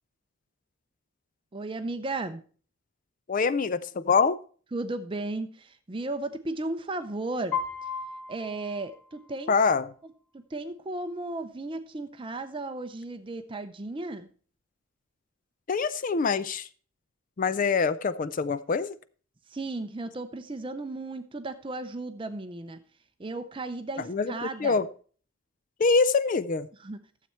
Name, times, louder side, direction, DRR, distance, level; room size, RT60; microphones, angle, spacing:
voice 1, 1.5-2.4 4.7-7.6 8.3-9.6 10.5-14.3 19.5-22.8 23.2-24.8 26.8-27.0, right 2 dB, 25° right, 10 dB, 0.5 m, -35 dB
voice 2, 3.3-4.4 9.5-9.9 15.7-16.7 17.4-19.0 24.0-24.9 25.8-26.7, left 4 dB, 40° left, 15 dB, 0.4 m, -25 dB
Piano, 7.5-9.6, left 6 dB, 5° left, 2.4 m, -36 dB
12.5 x 7.5 x 4.3 m, 0.42 s
head